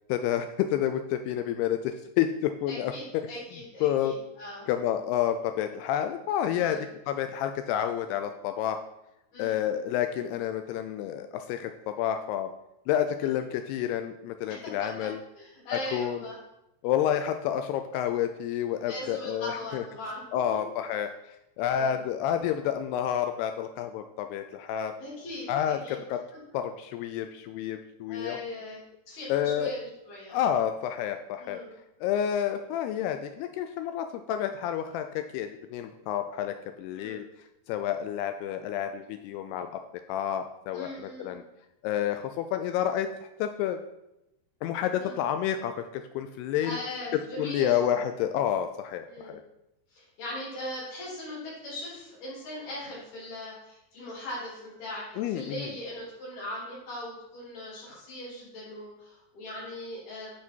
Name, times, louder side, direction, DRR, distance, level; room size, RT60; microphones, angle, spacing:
voice 1, 0.1-3.3 3.8-4.1 4.7-8.8 9.4-12.5 12.9-15.2 15.9-16.2 16.8-19.8 20.3-21.1 21.6-24.9 25.5-26.2 26.5-28.4 29.3-29.7 30.3-31.6 32.0-37.2 37.7-39.8 40.1-41.4 41.8-43.1 43.4-43.8 44.6-46.8 47.1-49.4 55.2-55.7, left 10 dB, 85° left, 7 dB, 2.4 m, -29 dB
voice 2, 2.7-4.7 6.6-6.9 9.3-9.6 13.2-13.3 14.5-15.1 15.4-16.4 18.9-20.2 20.5-20.6 21.7-22.0 25.0-26.0 26.3-26.4 28.1-30.4 31.4-31.7 36.9-37.2 40.7-41.4 45.0-45.2 46.6-48.1 49.1-49.4 49.9-60.3, left 1 dB, 65° left, -7 dB, 5.3 m, -40 dB
11.5 x 4.9 x 4.5 m, 0.88 s
omnidirectional pair, 4.9 m